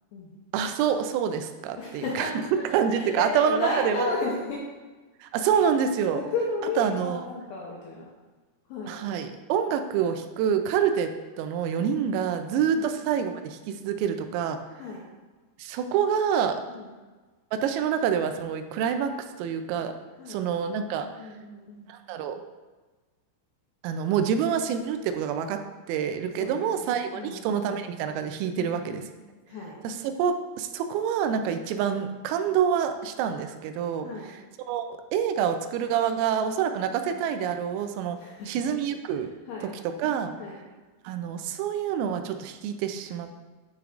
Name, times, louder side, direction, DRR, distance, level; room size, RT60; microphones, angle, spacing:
voice 1, 0.5-2.4 2.7-4.1 5.2-6.2 6.8-7.3 8.9-11.1 11.4-14.6 15.6-16.6 17.5-19.1 19.4-19.9 20.3-21.1 21.9-22.4 23.8-25.6 25.9-29.0 29.8-34.4 34.7-38.2 38.5-39.3 39.6-40.3 41.0-43.4, right 8 dB, 90° right, 8 dB, 3.3 m, -27 dB
voice 2, 1.8-4.6 6.1-8.1 8.7-9.0 12.7-12.9 14.8-15.0 16.7-16.9 20.2-20.4 20.9-21.9 26.4-27.4 28.5-29.1 29.5-29.8 34.0-34.3 36.7-36.8 38.2-38.5 39.5-39.7 40.4-40.6, left 3 dB, 80° left, -3 dB, 2.4 m, -34 dB
12.5 x 5.0 x 2.4 m, 1.3 s
omnidirectional pair, 5.9 m